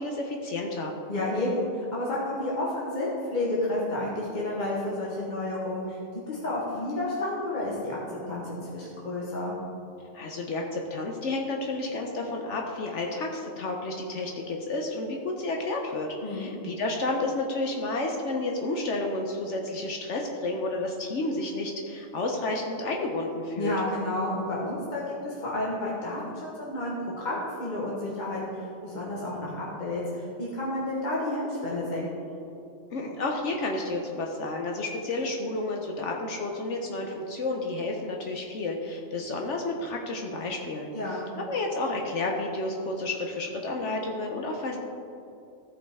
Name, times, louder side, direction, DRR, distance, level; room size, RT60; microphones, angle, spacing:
voice 1, 0.0-0.9 10.1-23.7 32.9-40.9 41.4-44.8, left 2 dB, 65° left, 1 dB, 1.0 m, -31 dB
voice 2, 1.1-8.0 8.3-9.6 16.2-16.5 23.6-32.4 40.9-41.2, left 1 dB, 35° left, -5 dB, 1.2 m, -31 dB
14.0 x 5.1 x 3.5 m, 2.7 s
omnidirectional pair, 1.4 m